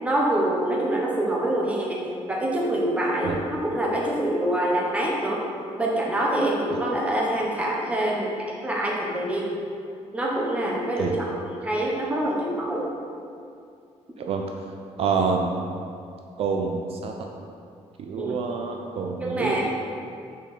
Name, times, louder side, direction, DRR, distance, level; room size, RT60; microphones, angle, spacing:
voice 1, 0.0-2.0 2.3-5.4 5.8-8.3 8.6-9.5 10.1-12.9 18.2-18.4 19.2-19.7, right 1 dB, 10° right, -3 dB, 0.9 m, -25 dB
voice 2, 15.0-15.5 16.4-17.1 18.0-19.7, right 5 dB, 55° right, 2 dB, 0.4 m, -27 dB
5.9 x 4.7 x 4.0 m, 2.4 s
cardioid pair, 165°, 12 cm